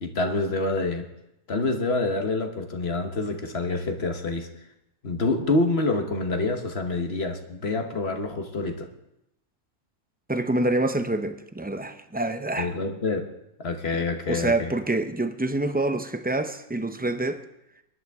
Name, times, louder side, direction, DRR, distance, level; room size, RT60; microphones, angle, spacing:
voice 1, 0.0-1.0 1.5-4.5 5.0-8.9 12.6-13.3 13.6-14.7, left 3 dB, 50° left, 5 dB, 1.4 m, -27 dB
voice 2, 10.3-12.7 14.3-17.4, right 2 dB, 15° right, 8 dB, 0.3 m, -26 dB
21.5 x 11.0 x 3.6 m, 0.85 s
omnidirectional pair, 1.4 m